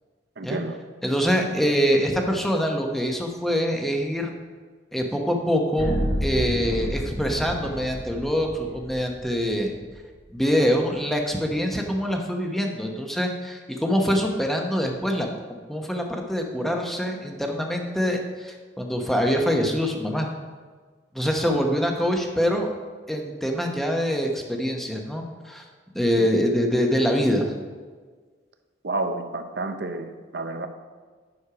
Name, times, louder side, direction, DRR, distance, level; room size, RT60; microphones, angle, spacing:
voice 1, 0.4-0.8 21.4-21.6 26.1-26.3 28.8-30.7, right 2 dB, 60° right, 7 dB, 0.8 m, -30 dB
voice 2, 1.0-4.3 4.9-9.7 10.3-15.3 15.7-20.3 21.1-22.7 23.1-25.6 25.9-27.5, equal, ahead, 1 dB, 0.9 m, -24 dB
sound 1, 5.8-9.8, equal, 80° left, 1.8 m, -30 dB
9.8 x 6.3 x 4.9 m, 1.5 s
head